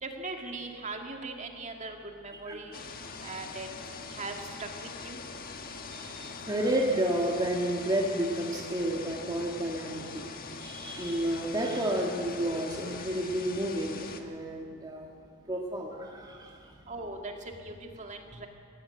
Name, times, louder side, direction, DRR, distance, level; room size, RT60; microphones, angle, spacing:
voice 1, 0.0-2.9 3.2-3.7 4.1-5.2 16.9-17.3 17.6-18.5, right 3 dB, 35° right, 3 dB, 2.1 m, -40 dB
sound 1, 2.7-14.2, left 4 dB, 45° left, 1.4 m, -42 dB
voice 2, 5.9-10.3 10.6-15.1 15.5-16.8 18.3-18.4, right 1 dB, 20° right, -1 dB, 1.7 m, -31 dB
17.0 x 16.5 x 9.6 m, 2.2 s
head